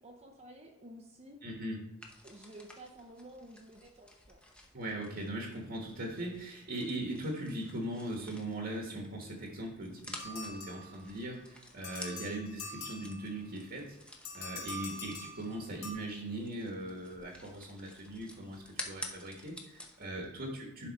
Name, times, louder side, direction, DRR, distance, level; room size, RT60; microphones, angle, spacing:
voice 1, 0.0-1.4 2.2-4.4 20.0-20.3, right 1 dB, 30° right, 2 dB, 0.7 m, -52 dB
voice 2, 1.4-1.9 4.7-13.9 14.3-20.9, right 1 dB, 50° right, 0 dB, 1.3 m, -40 dB
sound 1, 2.0-20.1, left 1 dB, 5° left, 0.8 m, -51 dB
sound 2, 10.2-11.3 11.8-13.5 14.2-15.9, left 2 dB, 70° left, 1.5 m, -45 dB
11.0 x 4.1 x 4.1 m, 0.88 s
head